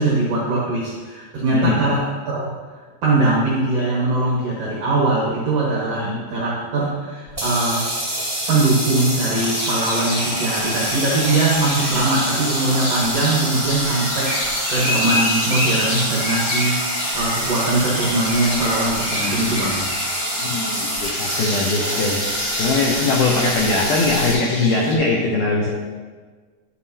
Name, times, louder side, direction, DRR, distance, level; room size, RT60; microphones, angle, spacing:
voice 1, 0.0-8.2 8.5-19.9, right 2 dB, 75° right, -5 dB, 1.4 m, -21 dB
sound 1, 7.3-24.3, right 1 dB, 15° right, 0.6 m, -26 dB
sound 2, 9.3-25.0, left 1 dB, 40° left, 2.2 m, -28 dB
voice 2, 20.4-22.2 22.6-25.7, left 3 dB, 85° left, -1 dB, 1.8 m, -21 dB
9.7 x 7.3 x 2.8 m, 1.5 s
omnidirectional pair, 4.7 m